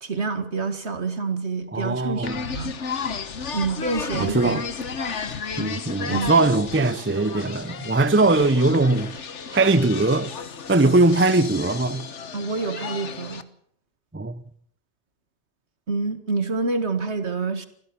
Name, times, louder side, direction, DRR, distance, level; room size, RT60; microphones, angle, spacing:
voice 1, 0.0-2.8 3.5-4.6 6.1-6.5 12.3-13.5 15.9-17.7, right 4 dB, 65° right, 2.2 m, -27 dB
voice 2, 1.7-2.4 4.2-4.7 5.6-9.1 9.5-10.3 10.7-12.1 14.1-14.4, right 2 dB, 15° right, 0.6 m, -20 dB
sound 1, 2.2-13.4, left 5 dB, 75° left, 1.5 m, -33 dB
25.0 x 16.0 x 7.0 m
omnidirectional pair, 1.3 m